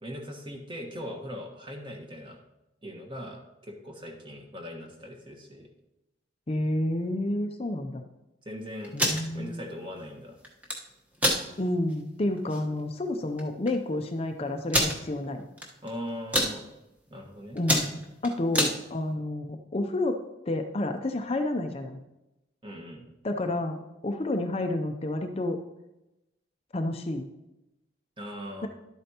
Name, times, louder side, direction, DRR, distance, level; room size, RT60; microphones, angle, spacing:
voice 1, 0.0-2.4 2.8-5.7 8.4-8.9 9.3-10.4 15.8-16.6 17.1-17.6 22.6-23.0 28.2-28.7, equal, 25° right, 2 dB, 1.4 m, -40 dB
voice 2, 6.5-8.0 8.9-9.6 11.6-15.4 17.5-20.2 20.5-22.0 23.2-25.6 26.7-27.3 28.6-28.7, left 1 dB, 30° left, 5 dB, 0.5 m, -30 dB
sound 1, 8.8-9.2 10.4-10.8 11.2-11.4 11.9-12.0 12.4-12.6 13.4-13.5 13.7-13.8 14.7-15.0 15.6-15.9 16.2-16.5 17.1-17.3 17.6-18.7, equal, 10° right, 1.2 m, -25 dB
11.5 x 8.6 x 2.9 m, 0.93 s
head